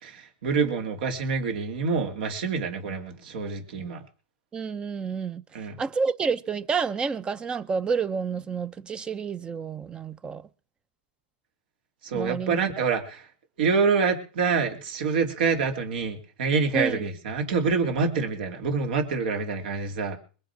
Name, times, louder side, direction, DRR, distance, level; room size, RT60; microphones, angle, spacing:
voice 1, 0.0-4.0 5.5-5.8 12.0-13.2 13.6-20.2, right 5 dB, 70° right, 3.2 m, -26 dB
voice 2, 4.5-5.4 5.8-10.4 12.1-12.6 16.7-17.0, right 5 dB, 15° right, 0.7 m, -29 dB
22.0 x 7.6 x 6.2 m
supercardioid pair, 145°, 5 cm